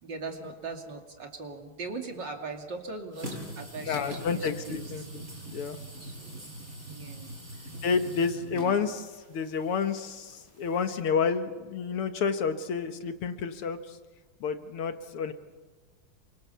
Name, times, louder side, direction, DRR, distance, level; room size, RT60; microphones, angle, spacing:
voice 1, 0.0-5.1 6.0-6.6 6.9-7.4 8.6-8.8, right 3 dB, 55° right, 3 dB, 3.2 m, -40 dB
sound 1, 3.1-11.0, right 1 dB, 40° right, 8.3 m, -43 dB
voice 2, 3.9-5.0 5.5-5.8 7.8-13.8 14.4-15.3, left 6 dB, 85° left, 8 dB, 2.4 m, -29 dB
28.0 x 25.0 x 7.0 m, 1.3 s
omnidirectional pair, 2.4 m